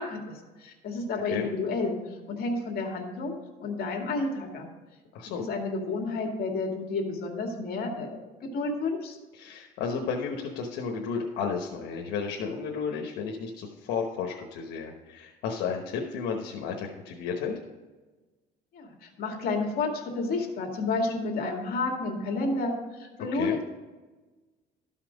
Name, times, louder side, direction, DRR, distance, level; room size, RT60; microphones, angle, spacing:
voice 1, 0.0-2.0 2.3-4.7 5.4-9.2 18.7-23.6, left 3 dB, 65° left, 2 dB, 2.3 m, -31 dB
voice 2, 9.3-17.6 23.3-23.6, left 5 dB, 85° left, 0 dB, 1.2 m, -33 dB
13.0 x 5.8 x 5.1 m, 1.2 s
cardioid pair, 110°, 17 cm